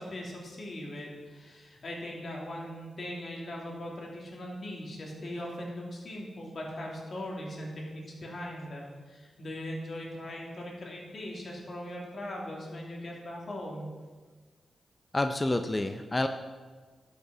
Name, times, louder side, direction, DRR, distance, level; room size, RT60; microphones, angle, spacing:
voice 1, 0.0-13.9, left 1 dB, 55° left, -2 dB, 3.1 m, -40 dB
voice 2, 15.1-16.3, left 2 dB, 25° left, 7 dB, 0.7 m, -28 dB
12.0 x 6.8 x 6.1 m, 1.4 s
cardioid pair, 60°, 0 cm